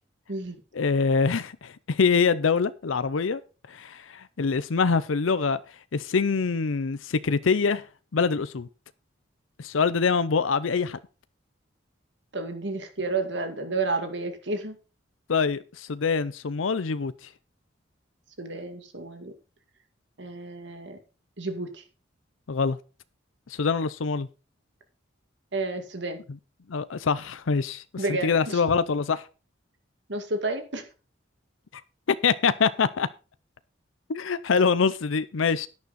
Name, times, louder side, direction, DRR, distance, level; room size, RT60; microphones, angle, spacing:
voice 1, 0.7-3.4 3.7-5.6 5.9-7.8 8.1-8.7 9.6-11.0 15.3-17.3 22.5-22.8 23.5-24.3 26.7-29.3 32.1-33.1 34.1-35.7, left 5 dB, 90° left, 0.6 m, -24 dB
voice 2, 12.3-14.8 18.4-19.3 20.2-21.0 21.4-21.8 25.5-26.2 28.0-28.6 30.1-30.8, right 3 dB, 65° right, 2.2 m, -31 dB
11.0 x 9.6 x 4.1 m
head